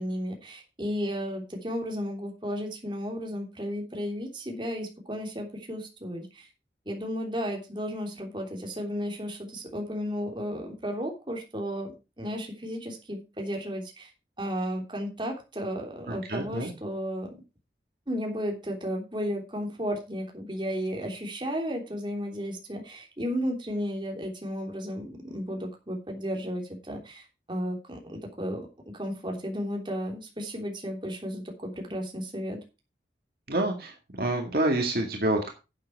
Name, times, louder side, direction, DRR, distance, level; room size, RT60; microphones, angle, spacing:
voice 1, 0.0-6.5 6.8-14.1 14.4-17.4 18.1-28.7 28.9-32.6, equal, 25° right, 1 dB, 3.3 m, -33 dB
voice 2, 16.1-16.7 33.5-33.9 34.2-35.5, right 1 dB, 55° right, 2 dB, 2.0 m, -27 dB
11.5 x 7.8 x 4.7 m, 0.28 s
head